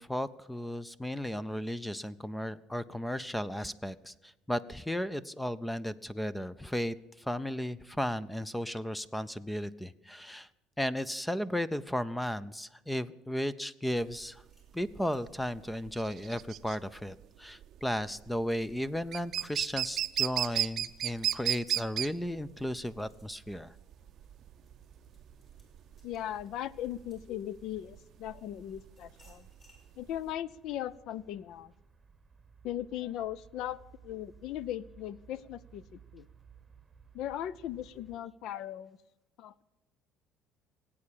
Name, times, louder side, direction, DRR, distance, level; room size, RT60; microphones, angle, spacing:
voice 1, 0.0-10.5 10.8-14.4 14.7-23.7, equal, 5° left, 18 dB, 0.4 m, -35 dB
sound 1, 14.0-30.3, right 12 dB, 45° right, 0.5 m, -35 dB
sound 2, 14.4-17.2 17.7-27.8 28.4-29.9, left 1 dB, 30° left, 5.0 m, -69 dB
sound 3, 23.9-38.2, right 6 dB, 15° right, 1.1 m, -59 dB
voice 2, 26.0-29.5 30.0-31.7 32.6-36.3 37.1-39.0 39.4-39.6, left 11 dB, 60° left, 21 dB, 0.5 m, -38 dB
18.5 x 8.6 x 8.5 m, 1.0 s
cardioid pair, 150°, 0 cm